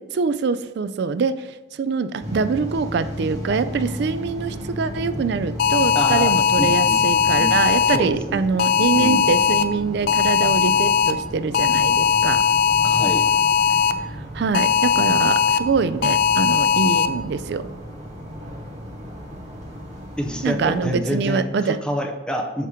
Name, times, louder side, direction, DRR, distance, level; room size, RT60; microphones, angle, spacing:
voice 1, 0.0-1.5 1.8-12.4 14.3-17.7 20.4-21.8, right 5 dB, 60° right, 12 dB, 0.3 m, -24 dB
sound 1, 2.2-21.7, equal, 40° right, 1.3 m, -34 dB
sound 2, 5.6-8.0 8.6-9.6 10.1-11.1 11.5-13.9 14.5-15.6 16.0-17.1, left 7 dB, 50° left, 0.3 m, -19 dB
voice 2, 5.9-7.0 7.4-7.5 7.9-8.5 8.9-9.2 12.8-13.2 20.2-22.7, equal, 5° left, 2 dB, 0.6 m, -27 dB
8.2 x 2.9 x 4.9 m, 1.0 s
head